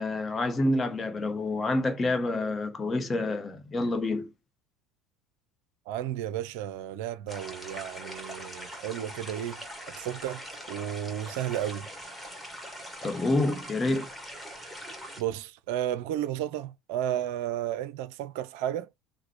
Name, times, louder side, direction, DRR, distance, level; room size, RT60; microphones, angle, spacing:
voice 1, 0.0-4.3 13.0-14.1, left 2 dB, 25° left, 0.9 m, -28 dB
voice 2, 5.9-9.6 10.0-10.4 10.7-11.9 15.2-18.9, right 11 dB, 60° right, 0.4 m, -33 dB
sound 1, 7.3-15.2, equal, ahead, 1.8 m, -42 dB
5.8 x 2.1 x 3.2 m
figure-of-eight pair, 65°, 0 cm